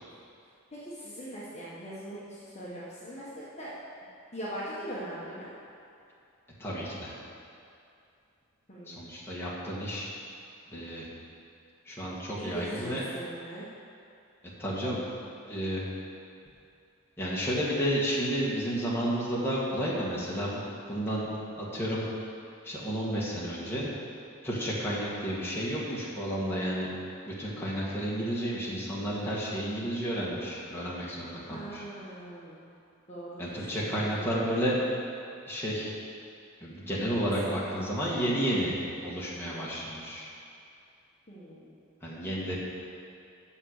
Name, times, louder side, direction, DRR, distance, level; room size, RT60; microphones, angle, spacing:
voice 1, 0.7-3.7 4.3-5.5 8.7-9.0 12.4-13.7 31.5-32.6 33.1-33.6 33.9-34.4 37.6-37.8 41.3-41.7, equal, 30° left, -8 dB, 1.4 m, -41 dB
voice 2, 6.6-7.1 8.9-10.1 10.7-11.1 11.9-13.1 14.6-15.1 15.5-15.8 17.2-21.3 21.6-22.0 22.6-23.9 24.4-26.9 27.3-31.8 33.4-34.8 35.5-35.9 36.6-40.3 42.0-42.6, equal, 10° left, -7 dB, 1.8 m, -31 dB
8.9 x 6.9 x 6.6 m, 2.6 s
head